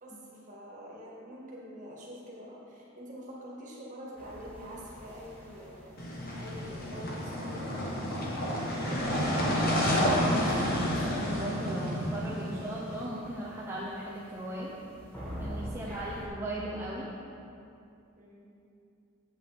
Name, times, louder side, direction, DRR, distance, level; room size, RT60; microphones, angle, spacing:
voice 1, 0.0-6.0 6.4-7.7 18.2-18.5, equal, 35° right, -5 dB, 1.7 m, -46 dB
sound 1, 4.2-16.3, equal, 5° left, 1.2 m, -44 dB
sound 2, 6.0-13.0, left 1 dB, 45° left, 1.2 m, -30 dB
voice 2, 9.1-14.7 15.4-17.1, right 1 dB, 10° right, -7 dB, 0.6 m, -37 dB
8.1 x 7.8 x 3.5 m, 2.6 s
head